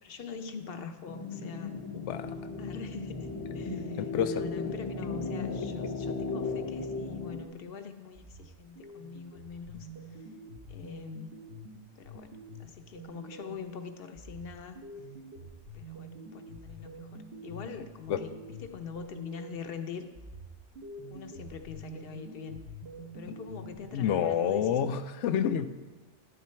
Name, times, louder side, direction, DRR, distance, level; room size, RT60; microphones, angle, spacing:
voice 1, 0.0-1.8 2.2-10.3 10.7-11.3 12.0-12.3 12.6-14.8 15.7-20.1 21.1-22.6 23.1-24.8, left 6 dB, 60° left, 8 dB, 0.9 m, -44 dB
sound 1, 1.0-7.4, left 4 dB, 30° left, 0.5 m, -36 dB
voice 2, 1.9-2.3 3.8-4.4 18.1-18.2 23.3-23.4 23.9-25.7, left 8 dB, 85° left, 12 dB, 0.9 m, -29 dB
sound 2, 6.9-7.7 8.1-13.7 14.1-19.8 20.1-24.1, right 1 dB, 60° right, 1.3 m, -47 dB
11.0 x 6.8 x 4.4 m, 1.2 s
omnidirectional pair, 1.2 m